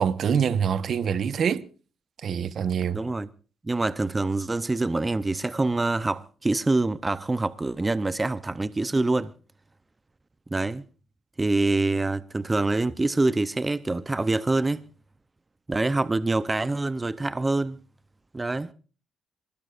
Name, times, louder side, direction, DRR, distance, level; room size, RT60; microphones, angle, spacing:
voice 1, 0.0-1.6 2.2-3.0, right 7 dB, 60° right, 1.1 m, -25 dB
voice 2, 2.9-3.3 3.6-9.3 10.5-10.8 11.4-14.8 15.7-17.8 18.3-18.7, right 2 dB, 20° right, 0.7 m, -25 dB
27.0 x 19.0 x 2.5 m
cardioid pair, 90°, 0 cm